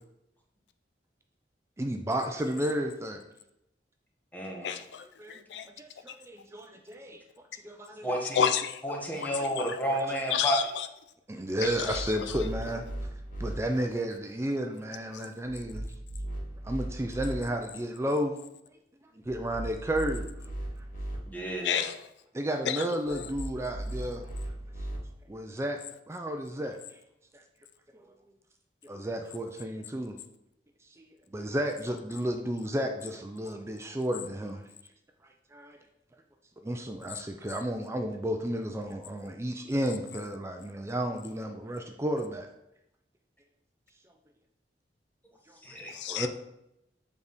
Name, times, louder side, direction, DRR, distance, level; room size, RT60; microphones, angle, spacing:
voice 1, 1.8-3.2 4.6-7.2 7.6-8.1 10.0-10.1 11.3-12.8 13.4-15.9 16.6-18.4 19.3-20.3 22.3-24.3 25.3-25.8 26.1-27.0 27.3-27.4 27.9-28.1 28.8-30.2 31.0-34.6 35.5-35.8 36.6-42.5 45.5-45.6 45.9-46.3, right 1 dB, 15° right, 4 dB, 0.4 m, -32 dB
voice 2, 4.3-4.7 8.0-8.5 8.8-10.6 21.3-21.9 45.6-45.9, equal, 10° left, -1 dB, 1.1 m, -31 dB
voice 3, 8.3-8.8 9.1-9.6 9.9-10.0 10.3-10.9 11.6-12.4 21.6-22.0 22.6-23.0 45.9-46.3, left 8 dB, 75° left, 9 dB, 0.4 m, -30 dB
sound 1, 11.6-13.5 15.4-17.4 19.2-21.2 23.0-25.0, right 1 dB, 50° left, 1.6 m, -38 dB
7.3 x 4.0 x 3.5 m, 0.84 s
head